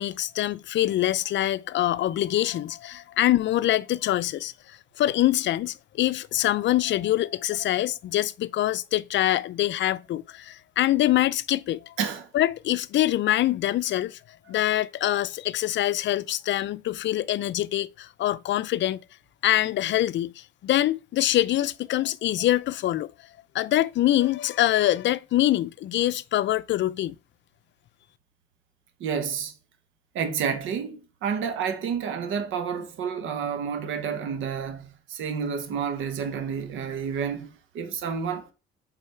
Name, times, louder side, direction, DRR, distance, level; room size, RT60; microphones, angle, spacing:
voice 1, 0.0-11.9 12.3-14.2 14.5-19.0 19.4-23.1 23.5-27.2, left 14 dB, 70° left, 0.5 m, -24 dB
voice 2, 12.0-12.3 29.0-29.5 30.1-38.5, right 7 dB, 90° right, 1.1 m, -30 dB
5.5 x 4.1 x 4.3 m
cardioid pair, 90°, 20 cm